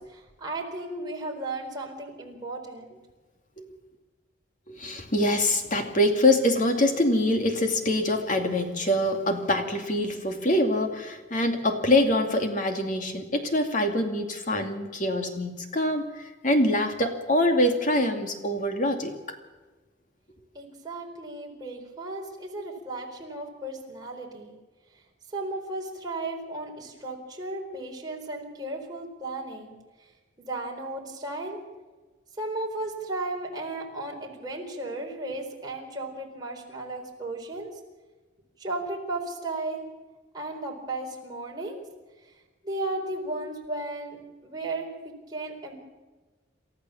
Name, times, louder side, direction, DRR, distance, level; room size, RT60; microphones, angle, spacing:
voice 1, 0.0-3.0 20.5-24.5 25.3-29.8 30.4-31.6 32.4-37.7 38.6-39.9 40.3-41.8 42.6-45.7, right 2 dB, 20° right, -1 dB, 4.4 m, -35 dB
voice 2, 4.7-19.4, left 1 dB, 40° left, 4 dB, 2.5 m, -24 dB
28.5 x 13.5 x 7.2 m, 1.3 s
head